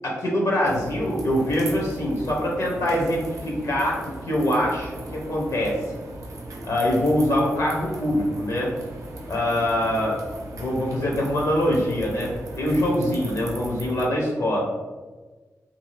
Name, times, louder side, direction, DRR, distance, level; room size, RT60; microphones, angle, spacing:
voice 1, 0.0-5.8 6.6-8.7 9.3-10.2 10.6-12.3 12.6-14.6, left 1 dB, 70° left, -2 dB, 0.7 m, -24 dB
sound 1, 0.6-14.0, right 1 dB, 75° right, 0.5 m, -38 dB
2.6 x 2.4 x 3.1 m, 1.3 s
wide cardioid pair, 80°, 6 cm